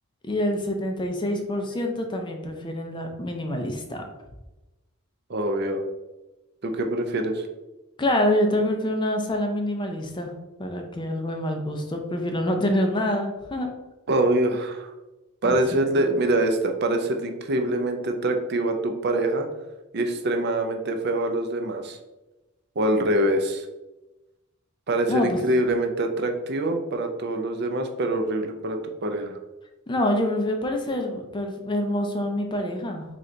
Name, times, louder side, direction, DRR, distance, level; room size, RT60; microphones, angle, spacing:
voice 1, 0.2-4.0 8.0-10.3 10.6-13.7 15.4-16.2 25.1-25.4 29.9-33.1, left 1 dB, 20° left, 4 dB, 0.4 m, -26 dB
voice 2, 5.3-5.8 6.6-7.5 14.1-14.9 15.4-19.5 19.9-22.0 22.8-23.7 24.9-29.4, right 1 dB, 45° right, 5 dB, 0.5 m, -24 dB
3.8 x 3.3 x 3.8 m, 1.1 s
head